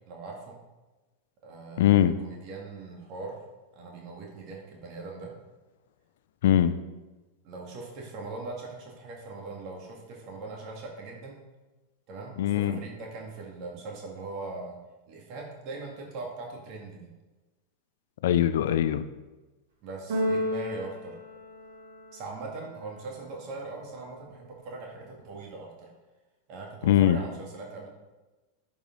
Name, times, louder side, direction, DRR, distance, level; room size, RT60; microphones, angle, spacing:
voice 1, 0.1-0.6 1.4-3.4 3.7-5.3 7.4-11.4 12.1-14.8 15.1-17.1 19.8-21.2 22.1-25.9 26.5-27.9, right 3 dB, 40° right, -1 dB, 2.0 m, -41 dB
voice 2, 1.8-2.1 6.4-6.8 12.4-12.8 18.2-19.0 26.8-27.2, left 11 dB, 60° left, 12 dB, 0.5 m, -21 dB
Keyboard (musical), 20.1-22.2, equal, 60° right, 1.8 m, -31 dB
11.0 x 4.8 x 3.8 m, 1.2 s
figure-of-eight pair, 90°, 0 cm